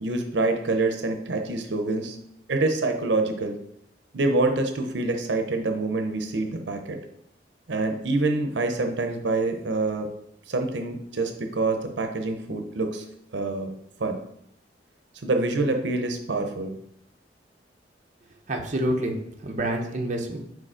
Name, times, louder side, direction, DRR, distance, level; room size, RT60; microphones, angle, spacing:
voice 1, 0.0-2.2 2.5-3.6 4.1-7.0 7.7-10.1 10.5-13.0 13.3-13.7 14.0-14.2 15.2-16.7, right 2 dB, 80° right, 5 dB, 0.7 m, -26 dB
voice 2, 18.5-20.4, right 1 dB, 40° right, 2 dB, 0.7 m, -28 dB
4.9 x 3.9 x 4.9 m, 0.76 s
head